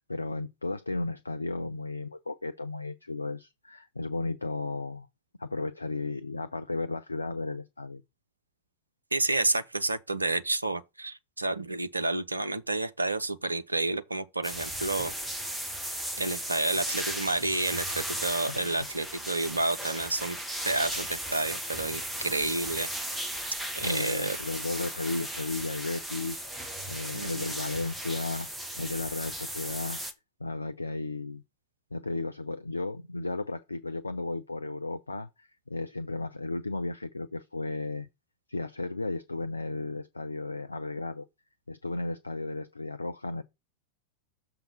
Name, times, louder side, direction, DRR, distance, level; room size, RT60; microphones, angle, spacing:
voice 1, 0.0-5.1 5.4-8.0 18.5-18.9 23.8-26.4 26.9-28.5 28.8-30.0 30.4-31.4 31.9-38.1 38.5-41.3 41.7-43.4, left 3 dB, 80° left, 0.4 m, -34 dB
voice 2, 9.1-15.1 16.2-20.4 20.6-22.9 23.8-24.4 27.1-27.5, right 2 dB, 80° right, 0.6 m, -30 dB
sound 1, 14.4-30.1, right 1 dB, 5° right, 1.2 m, -36 dB
6.9 x 3.8 x 6.2 m
figure-of-eight pair, 90°, 0 cm